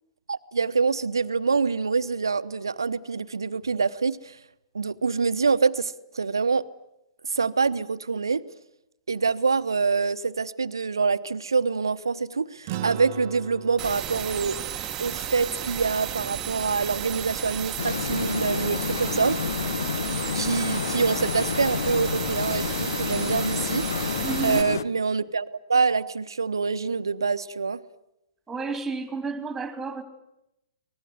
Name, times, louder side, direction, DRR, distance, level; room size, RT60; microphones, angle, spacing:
voice 1, 0.3-4.4 4.7-6.6 7.2-8.4 9.1-14.6 15.0-19.4 20.3-23.9 24.4-27.8, right 4 dB, 70° right, 13 dB, 1.0 m, -25 dB
sound 1, 12.7-17.3, right 12 dB, 40° right, 1.0 m, -40 dB
sound 2, 13.8-24.6, right 11 dB, 25° right, 1.3 m, -33 dB
sound 3, 17.8-24.8, left 6 dB, 60° left, 0.8 m, -29 dB
voice 2, 24.2-24.6 28.5-30.0, right 4 dB, 10° right, 10 dB, 3.2 m, -31 dB
24.5 x 19.5 x 9.7 m, 0.86 s
figure-of-eight pair, 115°, 2 cm